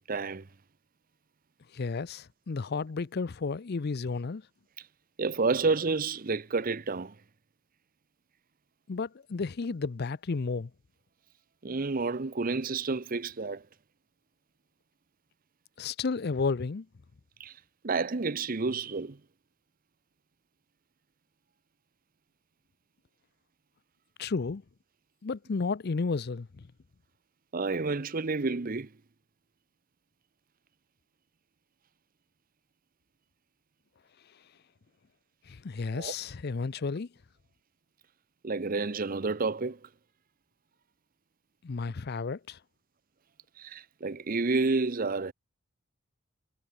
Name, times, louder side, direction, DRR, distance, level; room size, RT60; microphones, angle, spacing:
voice 1, 0.1-0.5 5.2-7.2 11.6-13.7 17.4-17.6 17.8-19.2 27.5-28.9 35.9-36.1 38.4-39.9 43.6-45.3, right 3 dB, 45° right, 0.7 m, -30 dB
voice 2, 1.7-4.4 8.9-10.7 15.8-16.9 24.2-24.6 25.2-26.7 35.5-37.1 41.6-42.6, left 4 dB, 50° left, 0.5 m, -32 dB
head